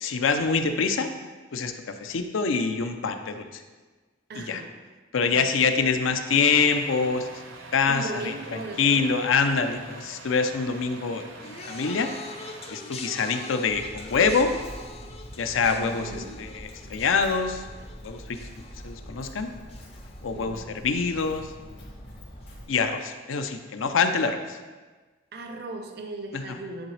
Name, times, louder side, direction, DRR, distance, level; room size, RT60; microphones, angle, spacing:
voice 1, 0.0-1.2 1.5-3.6 4.4-4.6 5.1-7.4 7.7-12.1 12.7-14.6 15.4-17.6 18.0-19.5 20.2-21.5 22.7-24.6 26.3-26.4, left 5 dB, 85° left, 7 dB, 0.5 m, -25 dB
voice 2, 4.3-4.8 5.3-5.8 7.9-9.3 15.7-16.4 20.3-20.8 25.3-26.9, right 2 dB, 55° right, 4 dB, 0.5 m, -38 dB
Truck, 6.3-12.7, right 3 dB, 80° right, 0.8 m, -45 dB
sound 1, 11.4-20.8 21.0-21.6 22.4-22.5, left 3 dB, 30° left, 0.5 m, -44 dB
Walk footsteps, 13.7-22.6, equal, 65° left, 2.2 m, -44 dB
10.5 x 3.8 x 3.2 m, 1.3 s
head